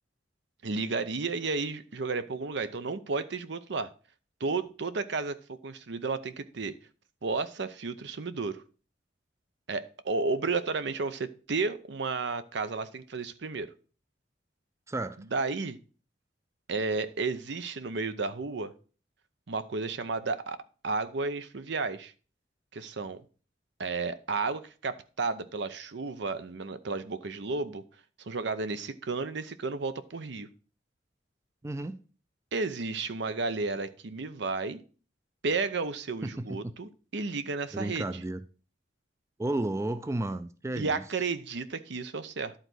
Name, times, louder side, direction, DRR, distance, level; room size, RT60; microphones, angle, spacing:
voice 1, 0.6-3.9 4.4-6.8 7.2-8.6 9.7-13.7 15.3-15.8 16.7-18.7 19.5-20.6 20.8-22.1 22.7-23.2 23.8-27.8 28.2-30.5 32.5-34.8 35.4-38.1 40.8-42.5, right 4 dB, 65° right, 0.7 m, -32 dB
voice 2, 14.9-15.2 31.6-32.0 36.2-36.7 37.7-38.4 39.4-41.0, right 1 dB, 15° right, 0.4 m, -33 dB
11.5 x 4.0 x 6.2 m
head